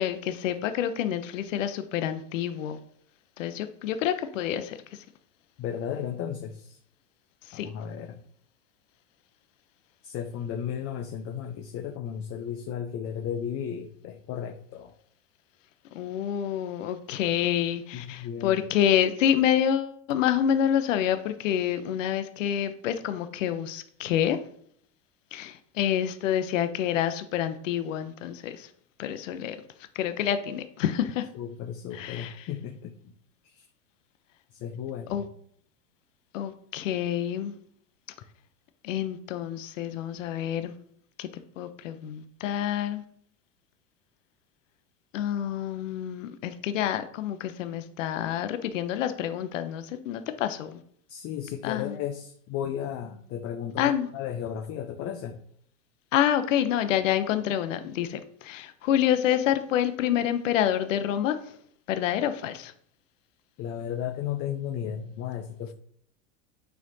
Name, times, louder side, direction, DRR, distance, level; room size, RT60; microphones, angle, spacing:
voice 1, 0.0-2.8 3.4-4.8 7.5-7.7 15.9-24.4 25.3-28.7 29.0-29.6 30.0-31.3 31.9-32.3 35.1-35.3 36.3-37.5 38.8-40.7 41.2-41.3 41.6-43.0 45.1-50.8 51.6-51.9 53.8-54.1 56.1-61.4 61.9-62.7, left 10 dB, 80° left, 11 dB, 0.7 m, -27 dB
voice 2, 5.6-6.8 7.5-8.2 10.0-14.9 17.9-18.6 31.3-33.1 33.4-33.7 34.5-35.3 51.1-55.4 63.6-65.7, left 9 dB, 40° left, 5 dB, 0.6 m, -34 dB
9.0 x 4.4 x 2.7 m, 0.64 s
hypercardioid pair, 110°, 37 cm